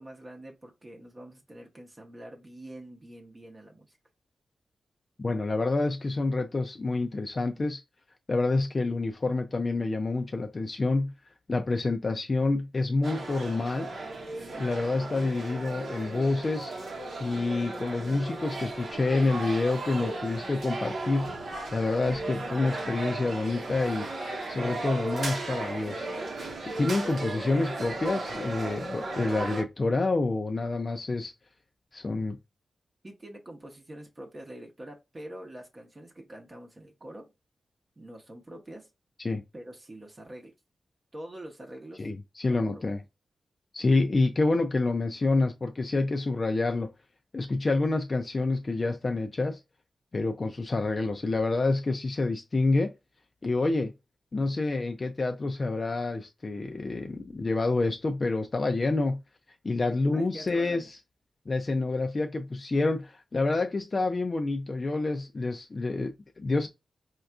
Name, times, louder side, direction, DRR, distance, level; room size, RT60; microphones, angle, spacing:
voice 1, 0.0-4.0 33.0-37.3 38.0-38.9 39.5-40.5 41.1-42.1 42.5-42.8 60.1-60.9, right 1 dB, 30° right, 0.7 m, -45 dB
voice 2, 5.2-7.8 8.3-11.1 11.5-13.9 14.5-16.7 17.2-24.1 24.5-26.1 26.8-31.3 31.9-32.4 39.2-39.4 42.0-43.0 43.7-46.9 47.3-49.6 50.1-52.9 53.4-53.9 54.3-59.2 59.6-60.9 61.5-66.7, left 3 dB, 40° left, 0.3 m, -28 dB
sound 1, 13.0-29.6, right 2 dB, 70° right, 0.9 m, -36 dB
4.3 x 2.4 x 2.3 m
cardioid pair, 75°, 0 cm